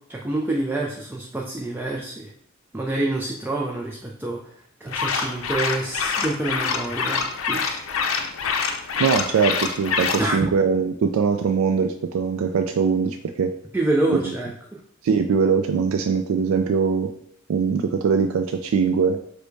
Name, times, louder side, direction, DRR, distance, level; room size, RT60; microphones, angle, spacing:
voice 1, 0.1-2.3 2.7-4.4 4.8-7.8 10.2-10.5 13.7-14.8, right 2 dB, 10° right, -1 dB, 0.4 m, -27 dB
sound 1, 4.9-10.3, left 5 dB, 80° left, 0.5 m, -26 dB
voice 2, 9.0-13.5 14.1-14.2 15.0-17.1 17.5-19.2, right 6 dB, 85° right, 6 dB, 0.3 m, -22 dB
5.2 x 2.2 x 4.6 m, 0.70 s
head